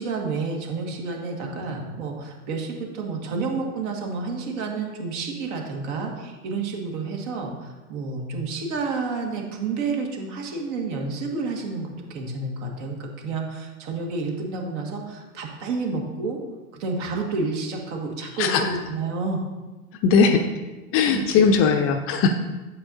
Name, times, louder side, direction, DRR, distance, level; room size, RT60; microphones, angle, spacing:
voice 1, 0.0-16.4 16.7-19.4 21.0-21.2, right 4 dB, 55° right, 1 dB, 1.8 m, -30 dB
voice 2, 18.4-18.8 20.0-20.4 20.9-22.3, left 5 dB, 30° left, 6 dB, 0.5 m, -19 dB
8.6 x 7.3 x 2.7 m, 1.2 s
hypercardioid pair, 95°, 44 cm